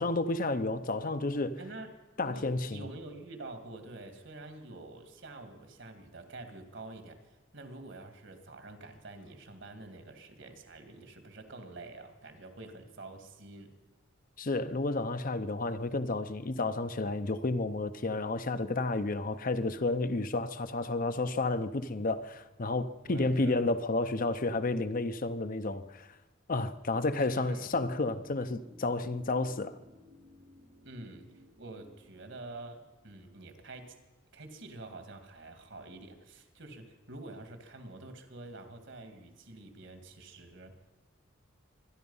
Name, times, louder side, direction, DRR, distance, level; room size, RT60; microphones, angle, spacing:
voice 1, 0.0-1.6 2.2-2.8 14.4-26.1 26.5-29.8, left 2 dB, 45° left, 0.7 m, -31 dB
voice 2, 1.6-1.9 2.2-13.7 23.1-23.6 27.2-27.7 30.8-34.0 34.3-40.8, right 2 dB, 65° right, 2.1 m, -47 dB
sound 1, 27.6-33.6 33.9-34.0, left 1 dB, 85° right, 5.1 m, -58 dB
24.5 x 10.5 x 5.5 m
head